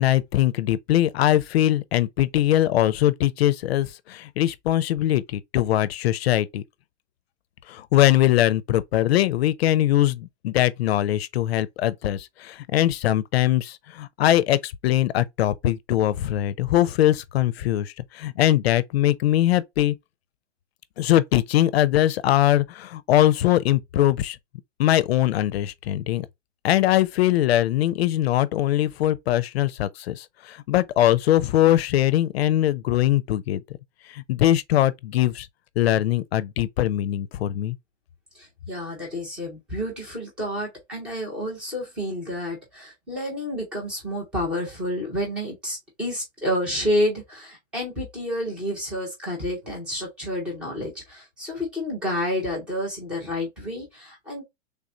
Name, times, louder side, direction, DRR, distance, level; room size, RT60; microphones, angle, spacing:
voice 1, 0.0-6.6 7.7-19.9 21.0-24.4 24.8-26.3 26.6-33.6 34.1-35.5 35.8-37.8, left 13 dB, 65° left, 0.4 m, -21 dB
voice 2, 38.3-54.4, left 1 dB, 5° right, 0.4 m, -29 dB
3.4 x 2.5 x 4.2 m
supercardioid pair, 170°, 35 cm